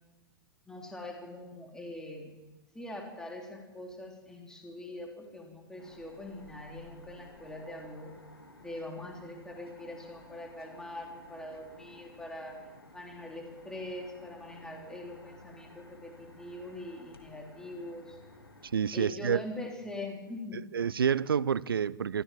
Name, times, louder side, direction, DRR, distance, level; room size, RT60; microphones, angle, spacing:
voice 1, 0.7-2.3 2.7-8.1 8.6-12.6 12.9-18.2 18.9-20.6, left 1 dB, 5° left, 3.4 m, -43 dB
sound 1, 5.8-18.7, left 2 dB, 85° left, 2.5 m, -54 dB
voice 2, 18.7-19.4 20.5-22.2, right 7 dB, 70° right, 0.6 m, -28 dB
25.0 x 14.5 x 7.5 m
figure-of-eight pair, 100°, 12 cm